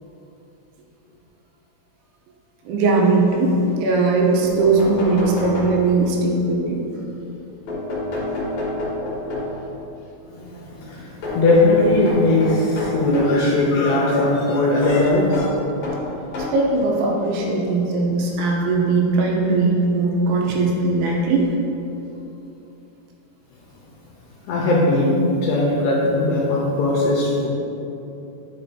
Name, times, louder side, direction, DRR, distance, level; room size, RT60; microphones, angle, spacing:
voice 1, 2.7-6.8 16.5-21.5, right 3 dB, 80° right, -2 dB, 3.2 m, -19 dB
sound 1, 4.1-4.2 4.4-6.2 7.7-9.7 11.2-13.4 14.8-16.7 17.6-17.7 19.0-19.1 19.4-19.5, left 1 dB, 60° left, 2.0 m, -28 dB
voice 2, 10.3-15.5 24.5-27.5, left 2 dB, 75° left, -4 dB, 2.6 m, -19 dB
10.5 x 6.9 x 2.8 m, 2.9 s
omnidirectional pair, 5.7 m